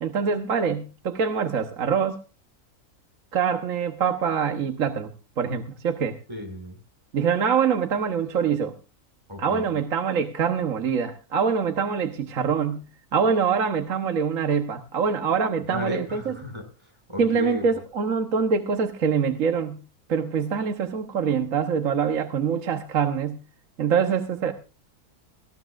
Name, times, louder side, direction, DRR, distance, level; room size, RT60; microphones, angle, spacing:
voice 1, 0.0-2.2 3.3-5.1 5.4-6.2 7.1-8.7 9.4-12.8 13.1-16.3 17.2-19.8 20.1-23.4 23.8-24.5, right 6 dB, 60° right, 6 dB, 1.5 m, -24 dB
voice 2, 6.3-6.8 9.3-9.8 15.7-17.6, left 2 dB, 15° right, 3 dB, 6.2 m, -34 dB
19.5 x 15.5 x 2.5 m, 0.32 s
omnidirectional pair, 1.6 m